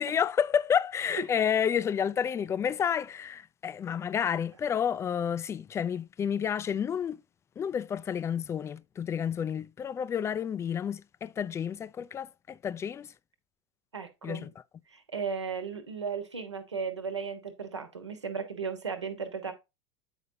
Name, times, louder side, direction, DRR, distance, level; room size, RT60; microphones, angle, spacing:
voice 1, 0.0-7.2 7.6-13.1 14.2-14.5, left 8 dB, 20° left, 0.4 m, -30 dB
voice 2, 13.9-14.5 14.9-19.5, right 5 dB, 80° right, 1.3 m, -35 dB
8.9 x 5.6 x 2.8 m
figure-of-eight pair, 80°, 15 cm